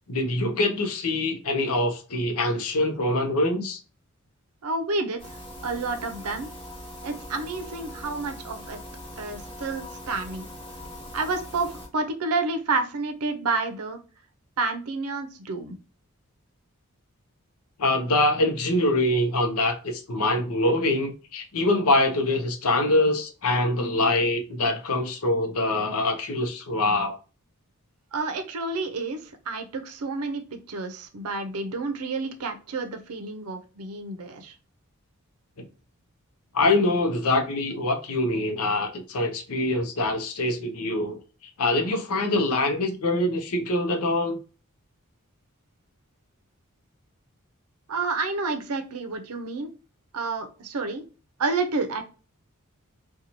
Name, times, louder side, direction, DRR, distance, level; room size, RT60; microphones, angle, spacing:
voice 1, 0.1-3.8 17.8-27.2 36.5-41.2 41.6-44.4, left 2 dB, 75° left, 0.6 m, -24 dB
voice 2, 4.6-5.4 5.6-6.5 7.0-8.8 9.2-10.5 11.1-14.0 14.6-15.8 28.1-34.5 47.9-49.7 50.1-51.0 51.4-52.0, right 3 dB, 85° right, 0.6 m, -29 dB
sound 1, 5.2-11.9, left 1 dB, 25° left, 1.1 m, -41 dB
2.9 x 2.3 x 2.6 m
head